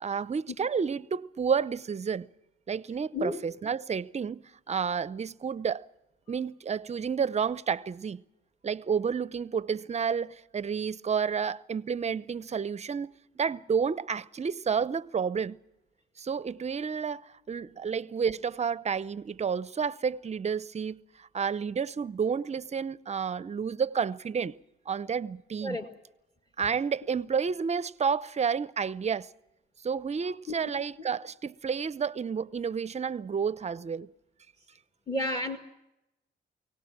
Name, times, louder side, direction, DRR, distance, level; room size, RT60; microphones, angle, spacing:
voice 1, 0.0-2.3 2.7-5.9 6.3-8.2 8.6-15.6 16.2-24.6 24.9-25.8 26.6-29.3 29.8-34.1, right 6 dB, 35° right, 0.7 m, -30 dB
voice 2, 35.1-35.6, left 1 dB, 20° left, 2.0 m, -30 dB
23.5 x 18.0 x 7.4 m
cardioid pair, 90°, 20 cm